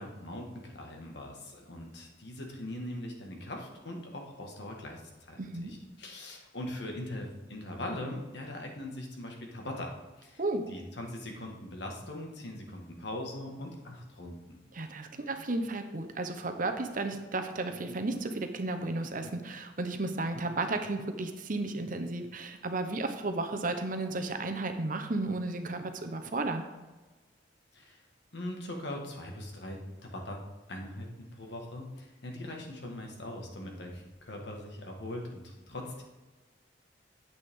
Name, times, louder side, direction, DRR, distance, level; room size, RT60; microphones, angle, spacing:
voice 1, 0.0-9.9 10.2-10.4 10.7-14.6 27.7-28.0 28.3-30.4 30.7-36.0, left 1 dB, 65° left, 1 dB, 1.8 m, -41 dB
voice 2, 5.4-5.7 10.4-10.6 14.7-26.6, right 2 dB, 45° right, 7 dB, 0.9 m, -33 dB
9.6 x 8.0 x 3.7 m, 1.2 s
head